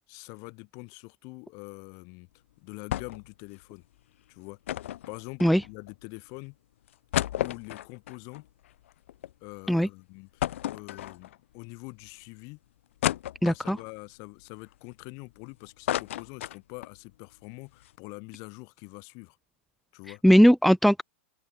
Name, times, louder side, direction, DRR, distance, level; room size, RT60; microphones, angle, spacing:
voice 1, 0.1-2.3 2.6-3.9 4.3-4.6 5.1-6.6 7.4-8.4 9.4-12.6 13.4-19.4 19.9-20.2, left 32 dB, 50° left, 7.2 m, -44 dB
sound 1, 2.9-3.3 3.6-3.7 4.7-5.9 6.5-6.6 6.9-9.3 9.7-9.8 10.4-11.5 12.1-12.2 13.0-13.9 14.4-15.4 15.6-17.0 17.3-17.4 17.7-17.9, left 13 dB, 70° left, 1.6 m, -32 dB
voice 2, 13.4-13.8 20.2-21.0, equal, ahead, 0.4 m, -19 dB
open air
hypercardioid pair, 120°, 7 cm